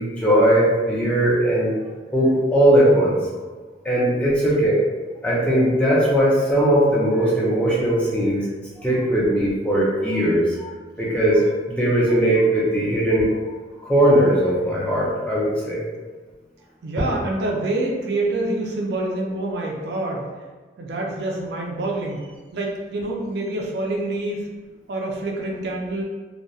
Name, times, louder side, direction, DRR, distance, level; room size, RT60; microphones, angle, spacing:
voice 1, 0.0-1.7 2.1-3.2 3.8-4.8 5.2-8.5 8.8-10.7 11.0-11.4 11.7-13.3 13.8-15.8, right 1 dB, 5° left, -7 dB, 0.5 m, -19 dB
voice 2, 16.8-20.3 20.8-24.5 24.9-26.0, right 2 dB, 65° right, -1 dB, 0.4 m, -26 dB
2.6 x 2.0 x 2.3 m, 1.4 s
head